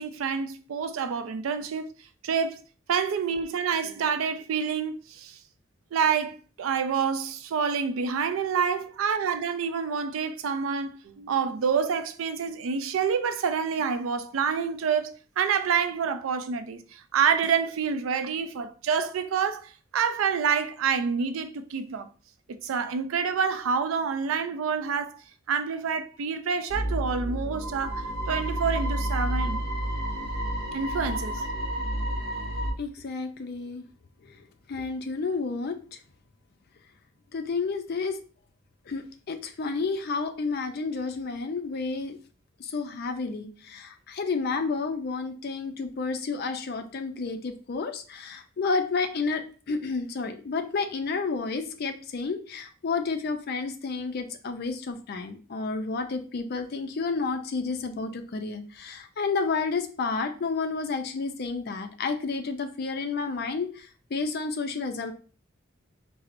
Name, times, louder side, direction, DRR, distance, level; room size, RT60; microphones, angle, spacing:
voice 1, 0.0-1.9 2.2-2.6 2.9-5.4 5.9-22.1 22.5-25.2 25.5-29.6 30.7-31.4, right 6 dB, 85° right, 0.4 m, -27 dB
sound 1, 26.7-32.7, right 1 dB, 55° right, 0.7 m, -30 dB
voice 2, 32.8-33.8 34.2-36.0 37.3-38.2 38.9-42.2 42.6-65.1, left 4 dB, 50° left, 0.4 m, -31 dB
4.3 x 2.0 x 2.5 m
head